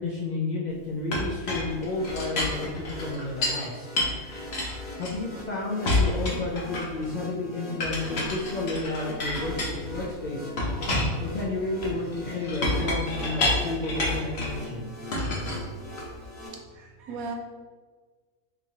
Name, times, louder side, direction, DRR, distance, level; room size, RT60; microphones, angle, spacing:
voice 1, 0.0-2.7 3.0-3.9 5.0-10.5 11.2-14.9, left 2 dB, 90° left, -5 dB, 0.4 m, -31 dB
Chink clink, 1.1-3.6 4.0-5.4 5.8-7.1 7.8-10.1 10.6-14.6 15.1-16.3, left 2 dB, 55° left, 1.0 m, -29 dB
sound 1, 1.7-16.5, left 1 dB, 35° left, 1.2 m, -42 dB
voice 2, 16.7-17.4, right 4 dB, 85° right, 3 dB, 1.1 m, -36 dB
4.0 x 3.0 x 2.8 m, 1.5 s
omnidirectional pair, 1.5 m